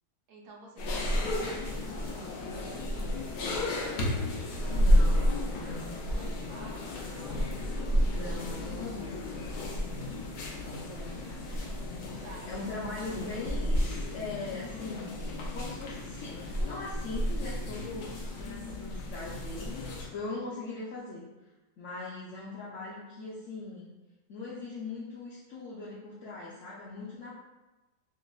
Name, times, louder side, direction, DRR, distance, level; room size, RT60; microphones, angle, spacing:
voice 1, 0.3-3.2 6.1-7.5 8.2-8.7 12.2-12.7, right 2 dB, 75° right, -2 dB, 0.5 m, -51 dB
sound 1, 0.8-20.0, left 1 dB, 90° left, 1.2 m, -31 dB
voice 2, 4.7-6.0 8.1-10.1 10.7-11.5 12.2-21.3 21.8-23.9 24.3-27.4, left 3 dB, 65° left, -6 dB, 0.8 m, -41 dB
5.0 x 2.0 x 2.3 m, 1.1 s
omnidirectional pair, 1.7 m